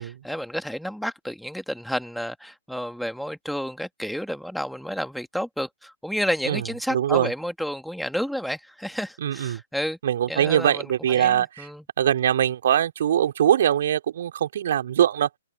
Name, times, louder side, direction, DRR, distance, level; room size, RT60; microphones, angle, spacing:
voice 1, 0.0-10.0 10.3-10.9 11.2-11.8, equal, ahead, 2.2 m, -31 dB
voice 2, 6.9-7.3 9.2-9.6 10.0-11.7 12.0-15.3, right 10 dB, 55° right, 4.1 m, -22 dB
figure-of-eight pair, 125°, 0 cm